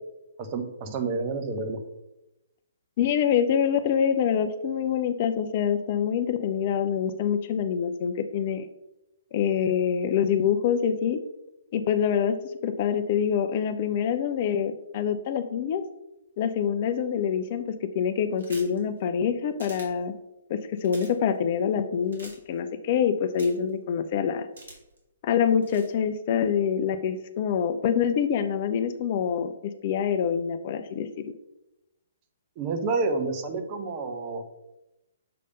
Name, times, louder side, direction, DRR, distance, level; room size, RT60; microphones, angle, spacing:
voice 1, 0.4-1.8 32.6-34.4, right 3 dB, 30° right, 6 dB, 0.8 m, -29 dB
voice 2, 3.0-8.7 9.3-11.2 11.7-12.4 12.6-15.8 16.4-20.1 20.5-24.5 25.2-29.5 29.8-31.1, left 8 dB, 40° left, 10 dB, 0.4 m, -25 dB
sound 1, 18.4-18.8 19.6-19.9 20.8-21.1 22.1-22.3 23.4-23.7 24.6-25.0 25.6-25.9, right 2 dB, 60° right, 2.0 m, -44 dB
6.7 x 3.3 x 5.2 m, 0.93 s
figure-of-eight pair, 125°, 0 cm